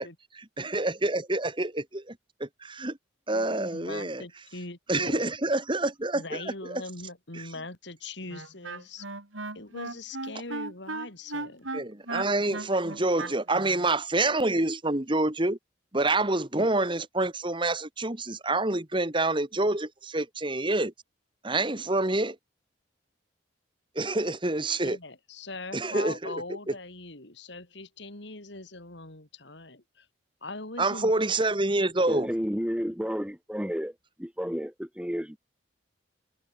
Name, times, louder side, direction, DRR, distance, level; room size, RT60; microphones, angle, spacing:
voice 1, 0.3-2.2 2.4-3.0 3.3-4.2 4.9-6.4 6.7-6.8 7.4-7.5 11.7-15.6 15.9-20.9 21.4-22.4 24.0-25.0 25.7-26.3 30.8-32.3, right 2 dB, 25° right, 1.9 m, -27 dB
voice 2, 3.3-5.3 6.1-9.1 9.5-11.7 24.8-30.1 30.4-31.1, left 2 dB, 65° left, 3.5 m, -41 dB
Wind instrument woodwind instrument, 8.3-13.9, right 2 dB, 85° right, 5.2 m, -36 dB
voice 3, 32.1-35.4, equal, 5° right, 1.2 m, -32 dB
head